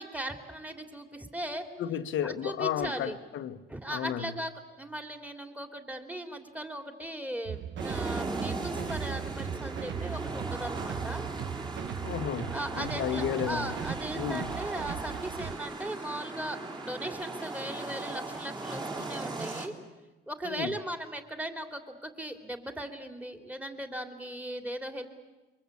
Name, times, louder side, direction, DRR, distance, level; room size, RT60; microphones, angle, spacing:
voice 1, 0.0-1.6 2.2-3.2 3.7-11.2 12.5-19.7 20.3-25.1, right 1 dB, 5° right, 3.1 m, -38 dB
voice 2, 1.8-3.6 3.9-4.3 12.0-13.7 14.2-14.5 20.4-20.7, left 10 dB, 75° left, 1.3 m, -33 dB
sound 1, 7.5-15.5, right 9 dB, 65° right, 1.0 m, -38 dB
sound 2, 7.8-19.7, right 2 dB, 20° right, 4.3 m, -38 dB
28.0 x 24.0 x 8.5 m
cardioid pair, 90°, 20 cm